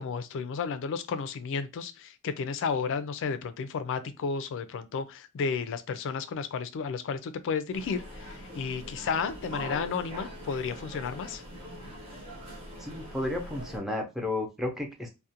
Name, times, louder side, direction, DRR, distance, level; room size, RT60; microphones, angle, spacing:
voice 1, 0.0-8.0 8.5-11.4, left 5 dB, 60° left, 0.3 m, -32 dB
sound 1, 7.7-13.8, equal, 25° right, 0.9 m, -42 dB
voice 2, 12.8-15.1, left 2 dB, ahead, 0.5 m, -32 dB
2.4 x 2.1 x 2.7 m
head